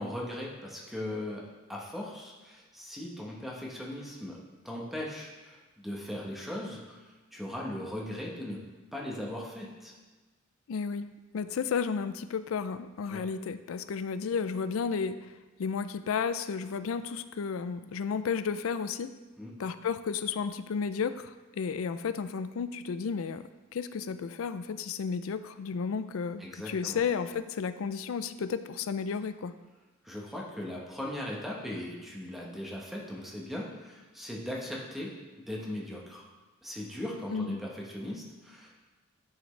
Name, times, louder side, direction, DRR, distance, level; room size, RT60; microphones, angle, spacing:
voice 1, 0.0-4.4 4.6-8.6 8.9-9.9 13.1-13.3 19.4-19.5 26.4-27.0 30.0-35.2 35.5-36.3 36.6-38.8, left 1 dB, ahead, -3 dB, 1.0 m, -39 dB
voice 2, 10.7-11.1 11.3-15.3 15.6-19.1 19.6-29.5 37.3-37.6, left 6 dB, 75° left, 12 dB, 0.4 m, -33 dB
9.9 x 5.9 x 3.2 m, 1.2 s
head